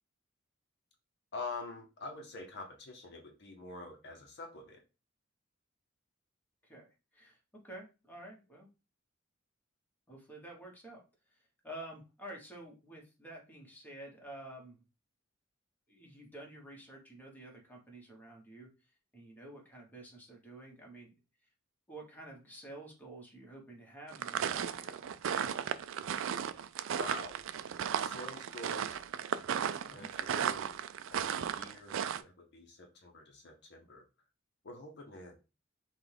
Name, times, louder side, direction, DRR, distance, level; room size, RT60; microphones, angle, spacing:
voice 1, 1.3-4.8 27.0-27.3 28.0-29.0 29.9-30.8 31.1-34.0 34.6-35.4, left 3 dB, 55° left, 3 dB, 0.8 m, -46 dB
voice 2, 6.6-7.4 7.6-8.7 10.1-14.8 15.9-18.7 19.1-21.1 21.9-25.0 29.8-30.1, right 1 dB, 10° left, -1 dB, 1.4 m, -50 dB
sound 1, 24.1-32.2, right 8 dB, 65° right, 0.4 m, -35 dB
5.8 x 2.4 x 3.5 m, 0.29 s
head